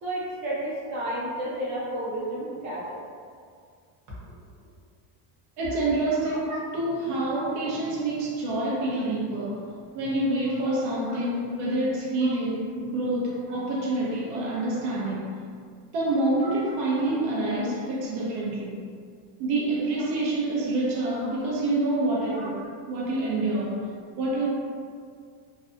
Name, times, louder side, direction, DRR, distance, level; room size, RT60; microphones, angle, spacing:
voice 1, 0.0-3.0 4.2-4.4 6.5-6.6 11.1-11.2 12.2-12.3 17.5-17.6 22.3-22.5, right 1 dB, 40° right, -8 dB, 0.9 m, -32 dB
voice 2, 5.6-15.3 15.9-18.8 19.4-22.6 22.9-23.9 24.2-24.5, right 2 dB, 85° right, -5 dB, 0.7 m, -27 dB
2.5 x 2.1 x 2.6 m, 2.1 s
cardioid pair, 155°, 46 cm